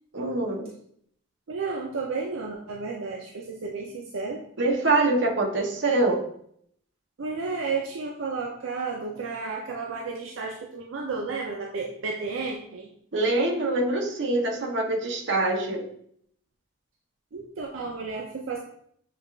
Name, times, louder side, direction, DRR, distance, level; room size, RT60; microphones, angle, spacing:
voice 1, 0.1-0.7 4.6-6.2 13.1-15.8, right 2 dB, 65° right, 1 dB, 0.8 m, -24 dB
voice 2, 1.5-4.4 7.2-12.9 17.3-18.6, right 4 dB, 85° right, 1 dB, 0.5 m, -32 dB
6.9 x 2.4 x 3.2 m, 0.68 s
head